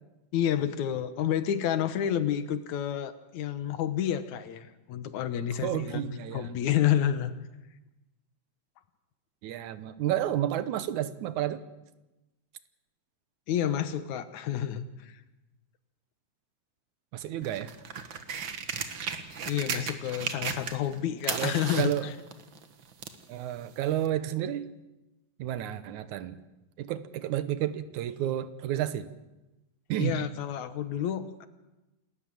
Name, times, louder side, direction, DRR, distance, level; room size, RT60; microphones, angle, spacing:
voice 1, 0.3-7.3 13.5-15.2 19.5-22.1 30.0-31.5, left 10 dB, 80° left, 11 dB, 2.5 m, -29 dB
voice 2, 5.6-6.5 9.4-11.6 17.1-17.7 18.1-18.2 21.3-22.1 23.3-24.7 25.4-26.4 26.8-29.1 29.9-30.2, right 12 dB, 90° right, 13 dB, 2.4 m, -31 dB
sound 1, 17.4-21.0 21.2-23.2 24.1-24.2, right 6 dB, 50° right, 1.8 m, -35 dB
28.5 x 13.5 x 7.6 m, 1.0 s
omnidirectional pair, 3.3 m